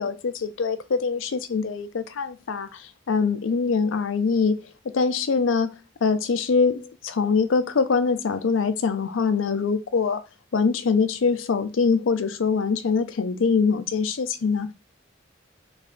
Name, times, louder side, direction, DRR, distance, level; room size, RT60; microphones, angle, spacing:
voice 1, 0.0-5.7 6.0-10.2 10.5-14.7, left 5 dB, 90° left, 0.5 m, -23 dB
3.3 x 3.1 x 3.7 m
head